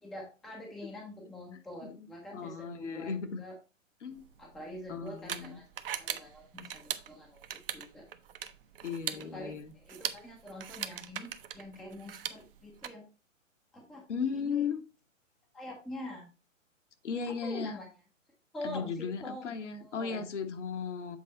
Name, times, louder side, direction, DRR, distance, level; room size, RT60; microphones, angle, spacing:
voice 1, 0.0-3.5 4.4-5.6 5.9-8.1 9.1-13.0 13.7-14.0 14.3-14.7 15.5-16.3 17.3-17.9 18.5-19.4 19.8-20.2, left 1 dB, ahead, 0.5 m, -45 dB
voice 2, 1.8-3.4 4.0-4.3 4.9-5.6 8.8-9.7 14.1-14.8 17.0-17.8 18.6-21.2, left 6 dB, 60° left, 1.2 m, -36 dB
sound 1, 4.2-12.9, right 9 dB, 45° right, 0.6 m, -41 dB
7.7 x 4.2 x 3.9 m
figure-of-eight pair, 125°, 40 cm